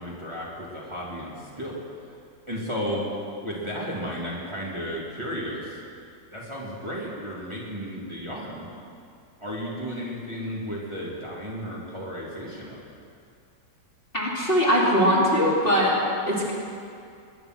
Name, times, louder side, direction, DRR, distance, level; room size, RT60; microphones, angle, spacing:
voice 1, 0.0-1.8 2.5-3.0 3.4-5.8 6.3-8.7 9.4-12.8, equal, 15° right, -5 dB, 2.7 m, -33 dB
voice 2, 14.1-15.9 16.3-16.5, equal, 30° left, -5 dB, 3.0 m, -21 dB
22.5 x 10.5 x 6.1 m, 2.5 s
omnidirectional pair, 1.8 m